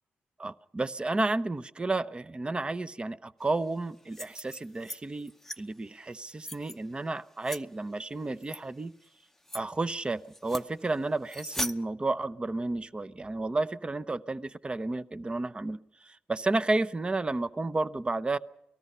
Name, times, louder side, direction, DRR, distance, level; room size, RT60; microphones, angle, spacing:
voice 1, 0.4-8.9 9.5-18.4, right 2 dB, 25° right, 16 dB, 0.8 m, -32 dB
sound 1, 4.0-5.0 5.3-5.6 6.1-6.8 7.4-7.6 8.4-8.6 9.0-9.1 9.5-9.6 10.3-10.7 11.3-11.7, left 1 dB, 5° left, 0.8 m, -38 dB
28.5 x 19.0 x 5.6 m, 0.85 s
cardioid pair, 70°, 4 cm